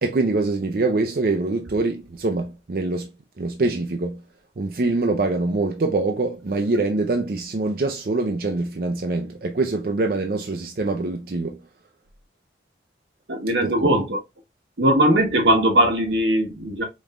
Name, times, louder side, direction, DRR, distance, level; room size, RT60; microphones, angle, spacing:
voice 1, 0.0-3.1 3.4-4.2 4.6-11.6 13.6-13.9, right 3 dB, 55° right, 0.5 m, -24 dB
voice 2, 13.3-14.2 14.8-16.8, right 1 dB, 85° right, 1.4 m, -19 dB
5.2 x 3.1 x 2.4 m
head